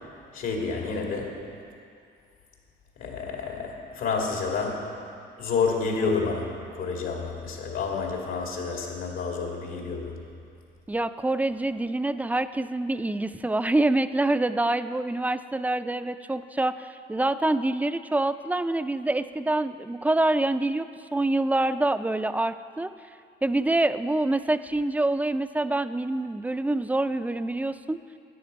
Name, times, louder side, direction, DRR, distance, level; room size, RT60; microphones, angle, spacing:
voice 1, 0.3-1.4 3.0-4.8 5.4-10.1, left 4 dB, 85° left, 0 dB, 2.4 m, -29 dB
voice 2, 10.9-22.9 23.4-28.0, right 2 dB, 10° right, 11 dB, 0.4 m, -26 dB
14.0 x 10.0 x 5.2 m, 2.4 s
cardioid pair, 90°, 20 cm